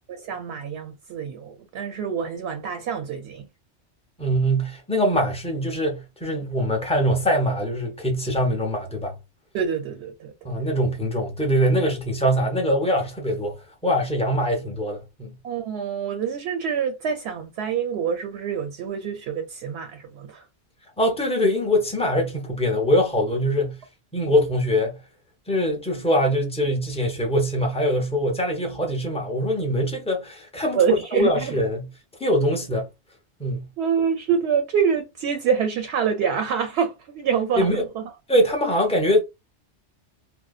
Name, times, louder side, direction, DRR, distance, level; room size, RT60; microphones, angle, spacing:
voice 1, 0.1-3.5 9.5-10.5 15.4-20.5 30.8-31.6 33.8-38.1, right 7 dB, 70° right, 0.8 m, -26 dB
voice 2, 4.2-9.1 10.4-13.5 13.8-15.3 21.0-23.8 24.1-25.0 25.5-30.8 31.1-31.9 32.2-32.9 33.4-33.7 37.6-37.8 38.3-39.2, equal, 5° left, 0.5 m, -23 dB
2.6 x 2.0 x 2.3 m
omnidirectional pair, 1.2 m